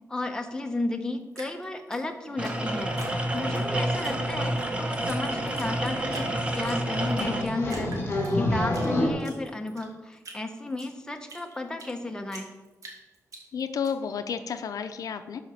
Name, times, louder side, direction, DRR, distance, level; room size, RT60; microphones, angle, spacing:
voice 1, 0.1-2.9 3.3-6.3 6.5-12.5, left 2 dB, 10° left, 4 dB, 1.0 m, -33 dB
Drip, 1.3-3.6 4.0-4.7 5.1-5.2 5.5-6.3 6.7-7.3 7.7-8.9 9.2-12.0 12.3-13.9, right 2 dB, 70° right, 2.2 m, -45 dB
sound 1, 2.4-7.4, right 1 dB, 20° right, 1.2 m, -29 dB
sound 2, 4.3-4.6 4.9-5.0 5.2-5.3 5.6-5.7 5.9-6.1 6.6-6.7 7.2-9.1, left 1 dB, 40° left, 2.7 m, -27 dB
voice 2, 13.5-15.4, left 7 dB, 80° left, 9 dB, 0.5 m, -31 dB
12.5 x 4.9 x 5.7 m, 1.2 s
wide cardioid pair, 125°, 6 cm